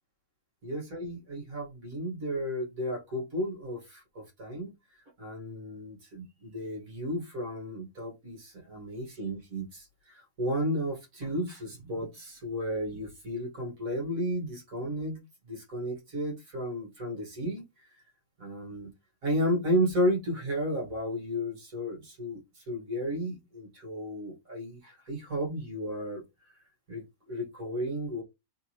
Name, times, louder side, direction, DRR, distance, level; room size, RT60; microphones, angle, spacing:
voice 1, 0.6-4.7 5.2-15.2 15.5-17.6 18.4-18.9 19.2-26.2 26.9-28.2, equal, 65° right, 2.3 m, -33 dB
3.7 x 3.7 x 3.0 m
omnidirectional pair, 1.6 m